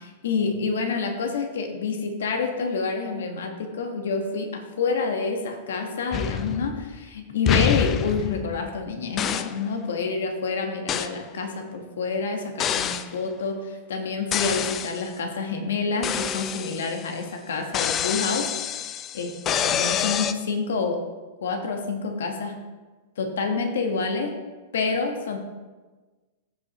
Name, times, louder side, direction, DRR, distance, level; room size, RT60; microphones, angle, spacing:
voice 1, 0.0-21.0 21.4-22.6 23.2-24.3 24.7-25.4, left 4 dB, 80° left, 4 dB, 1.2 m, -28 dB
sound 1, 6.1-7.1 7.5-8.8 9.2-9.6 10.9-11.2 12.6-13.1 14.3-15.1 16.0-17.1 17.7-20.3, left 9 dB, 30° left, 0.4 m, -27 dB
14.5 x 5.3 x 3.0 m, 1.3 s
hypercardioid pair, 115°, 0 cm